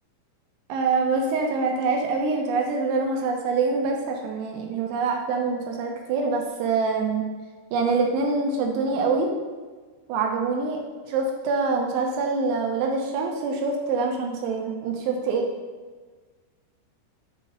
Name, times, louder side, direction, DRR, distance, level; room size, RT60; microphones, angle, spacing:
voice 1, 0.7-7.2 7.7-9.3 10.1-10.8 11.1-15.5, right 4 dB, 80° right, 1 dB, 2.6 m, -25 dB
7.9 x 2.9 x 5.2 m, 1.4 s
omnidirectional pair, 5.4 m